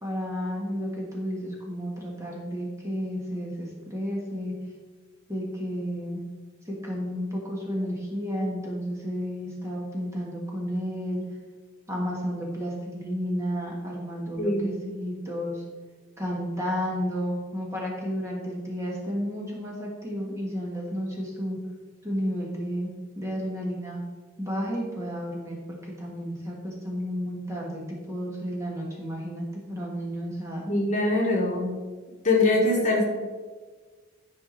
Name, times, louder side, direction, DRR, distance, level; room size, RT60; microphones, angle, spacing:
voice 1, 0.0-4.5 5.3-6.2 6.6-11.2 11.9-15.6 16.2-21.6 22.0-22.9 23.1-24.0 24.4-30.6, equal, 15° right, -3 dB, 1.5 m, -32 dB
voice 2, 14.4-14.7 30.7-31.8 32.2-33.0, left 2 dB, 35° left, -2 dB, 1.7 m, -23 dB
11.0 x 4.8 x 3.9 m, 1.4 s
head